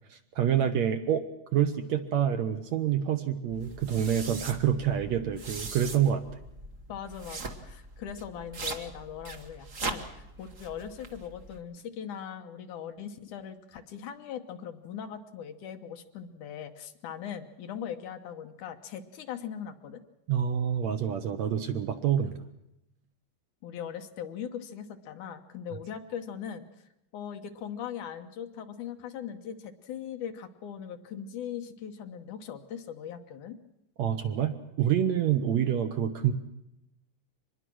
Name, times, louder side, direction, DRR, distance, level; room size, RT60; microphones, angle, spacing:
voice 1, 0.1-1.2 1.5-6.2 20.3-22.3 34.0-36.3, right 9 dB, 65° right, 8 dB, 1.9 m, -27 dB
sound 1, 3.5-11.6, right 3 dB, 45° right, 1.0 m, -41 dB
voice 2, 6.9-20.0 23.6-26.7 27.1-33.6, left 8 dB, 70° left, 7 dB, 2.5 m, -40 dB
24.5 x 20.5 x 6.3 m, 0.85 s
omnidirectional pair, 3.9 m